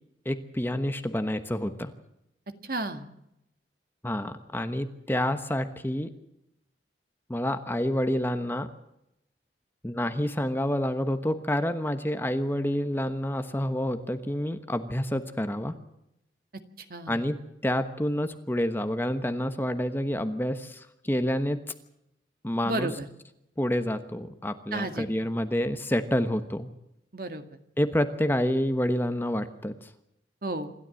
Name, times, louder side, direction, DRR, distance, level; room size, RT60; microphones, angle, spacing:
voice 1, 0.2-1.9 4.0-6.1 7.3-8.7 9.8-15.7 17.1-17.4 17.6-21.6 22.4-22.9 23.6-26.7 27.8-29.9, left 1 dB, 10° left, 9 dB, 1.1 m, -28 dB
voice 2, 2.6-3.1 16.9-17.2 22.6-23.1 24.7-25.1 27.1-27.4 30.4-30.7, right 2 dB, 55° right, 8 dB, 1.9 m, -32 dB
27.0 x 12.5 x 7.7 m, 0.84 s
head